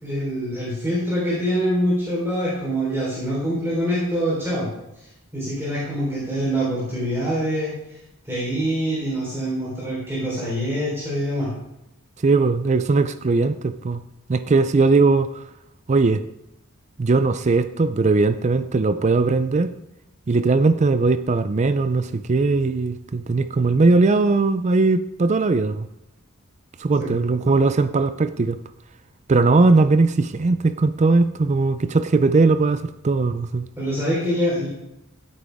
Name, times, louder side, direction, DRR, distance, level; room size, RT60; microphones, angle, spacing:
voice 1, 0.0-4.7 5.0-5.1 5.3-8.0 8.2-11.5 27.0-27.1 33.8-34.7, equal, 10° right, 3.9 m, -25 dB
voice 2, 12.2-14.0 14.3-15.4 15.9-16.2 17.0-19.7 20.3-25.9 26.8-28.6 29.3-33.7, right 3 dB, 30° right, 0.4 m, -19 dB
15.5 x 8.6 x 3.5 m
head